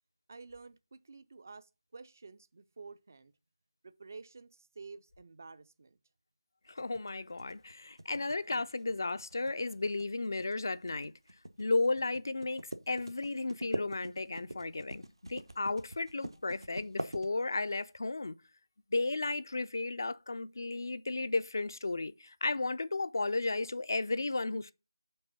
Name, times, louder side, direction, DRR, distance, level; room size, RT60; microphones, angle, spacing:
voice 1, 0.3-3.3 3.8-6.0, right 4 dB, 35° right, 0.4 m, -51 dB
voice 2, 6.7-11.1 11.6-15.0 15.3-18.3 18.9-24.7, left 3 dB, 50° left, 0.4 m, -34 dB
sound 1, 6.8-17.8, right 1 dB, 75° right, 0.9 m, -43 dB
5.3 x 4.2 x 5.7 m
figure-of-eight pair, 165°, 3 cm